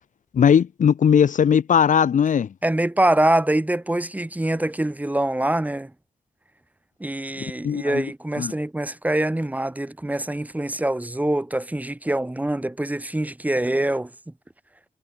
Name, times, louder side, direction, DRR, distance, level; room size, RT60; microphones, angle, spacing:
voice 1, 0.3-2.5 7.6-8.1 8.4-8.5, left 7 dB, 80° left, 0.7 m, -18 dB
voice 2, 2.6-5.9 7.0-14.1, right 1 dB, 10° right, 4.0 m, -24 dB
wide cardioid pair, 155°, 13 cm